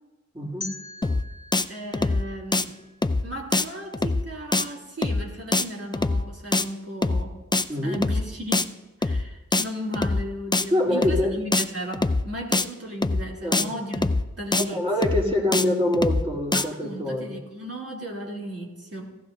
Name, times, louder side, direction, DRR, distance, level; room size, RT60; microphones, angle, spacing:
voice 1, 0.3-0.6 7.7-8.0 10.7-11.4 13.4-13.7 14.5-17.3, left 1 dB, 20° right, -3 dB, 3.4 m, -25 dB
sound 1, 0.6-3.5, left 2 dB, 90° left, 1.2 m, -43 dB
sound 2, 1.0-1.2 1.5-1.7 1.9-2.2 2.5-2.6 3.0-3.2 3.5-3.7 3.9-4.2 4.5-4.7 5.0-5.2 5.5-5.7 5.9-6.2 6.5-6.7 7.0-7.2 7.5-7.6 7.9-8.2 8.5-8.7 9.0-9.2 9.5-9.7 9.9-10.2 10.5-10.7 11.0-11.2 11.5-11.7 11.9-12.2 12.5-12.7 13.0-13.2 13.5-13.7 13.9-14.2 14.5-14.6 15.0-15.2 15.5-15.7 15.9-16.2 16.5-16.6, left 3 dB, 15° left, 0.4 m, -23 dB
voice 2, 1.7-2.8 3.2-7.3 7.8-8.7 9.0-14.1 14.4-14.8 16.5-19.1, right 1 dB, 50° right, -2 dB, 3.2 m, -35 dB
16.5 x 14.0 x 2.7 m, 1.1 s
wide cardioid pair, 65°, 30 cm